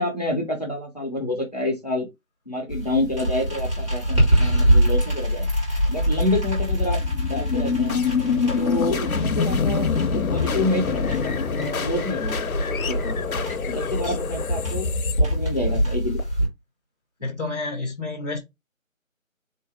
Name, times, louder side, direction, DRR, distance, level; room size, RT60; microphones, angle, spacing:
voice 1, 0.0-2.1 2.5-5.5 5.9-8.0 8.6-12.5 12.9-13.2 13.7-14.9 15.2-16.2, left 1 dB, 30° left, 0.8 m, -28 dB
sound 1, 2.7-16.5, right 1 dB, 20° right, 1.6 m, -25 dB
sound 2, 5.2-16.2, left 6 dB, 90° left, 0.7 m, -26 dB
voice 2, 17.2-18.4, left 3 dB, ahead, 0.8 m, -30 dB
3.9 x 2.7 x 3.3 m
figure-of-eight pair, 170°, 41 cm